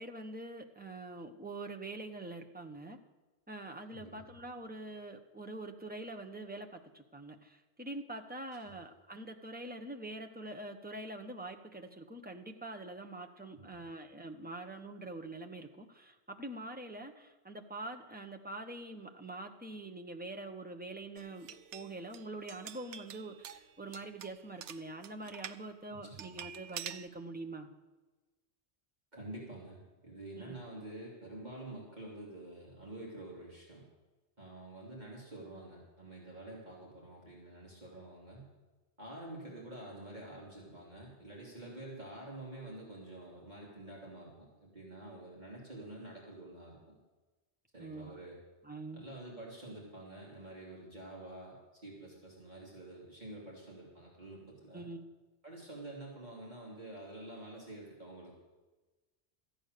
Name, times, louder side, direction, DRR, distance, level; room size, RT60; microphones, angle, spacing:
voice 1, 0.0-3.0 3.5-27.7 30.4-30.6 47.8-48.2 48.6-49.1 54.7-55.1, right 2 dB, 10° right, 3 dB, 0.8 m, -45 dB
voice 2, 3.9-4.3 8.6-8.8 13.5-13.7 25.9-26.4 29.1-33.8 34.4-38.5 39.0-47.0 47.7-48.4 48.9-54.9 55.4-58.3, right 1 dB, 40° right, -4 dB, 2.9 m, -48 dB
sound 1, 21.2-25.6 26.2-27.1, right 9 dB, 85° right, 1.0 m, -47 dB
14.0 x 9.3 x 6.6 m, 1.2 s
omnidirectional pair, 1.2 m